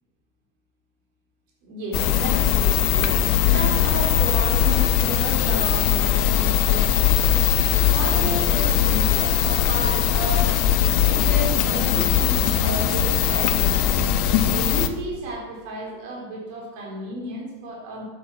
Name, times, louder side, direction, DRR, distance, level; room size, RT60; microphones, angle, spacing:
voice 1, 1.6-3.1 3.5-7.4 7.9-10.5 11.0-13.8 14.4-18.0, right 1 dB, 55° right, -2 dB, 3.8 m, -32 dB
sound 1, 1.9-14.9, left 10 dB, 50° left, 0.8 m, -20 dB
9.2 x 8.7 x 6.3 m, 1.2 s
figure-of-eight pair, 85°, 0 cm